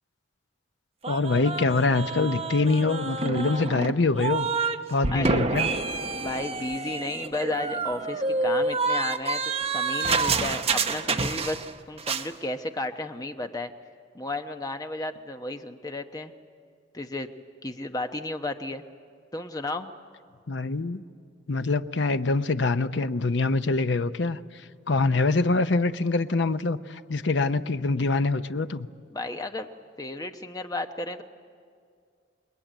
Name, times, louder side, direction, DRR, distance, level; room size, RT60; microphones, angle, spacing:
sound 1, 1.0-4.8 5.0-11.7 12.0-12.3, right 4 dB, 30° right, 0.8 m, -28 dB
voice 1, 1.1-4.5 4.9-5.7 20.5-21.0 21.5-24.4 24.9-28.9, left 3 dB, 65° left, 10 dB, 0.7 m, -24 dB
voice 2, 6.2-9.4 9.7-13.7 14.1-16.3 16.9-17.3 17.6-18.8 19.3-19.9 29.1-29.7 30.0-31.2, left 2 dB, 20° left, 6 dB, 0.9 m, -33 dB
28.0 x 20.5 x 9.2 m, 2.2 s
head